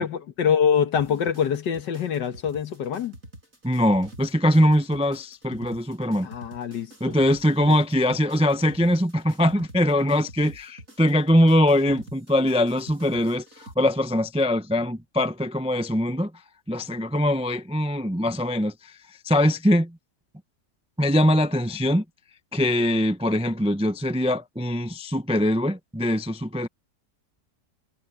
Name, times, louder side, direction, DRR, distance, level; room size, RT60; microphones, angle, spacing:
voice 1, 0.0-3.1 6.2-7.2 7.6-7.8, left 8 dB, 85° left, 1.9 m, -25 dB
sound 1, 0.9-13.7, right 1 dB, 50° right, 7.4 m, -47 dB
voice 2, 3.6-6.3 7.0-16.3 16.7-18.9 19.2-20.0 21.0-22.0 22.5-26.7, left 1 dB, 10° right, 0.3 m, -22 dB
omnidirectional pair, 1.8 m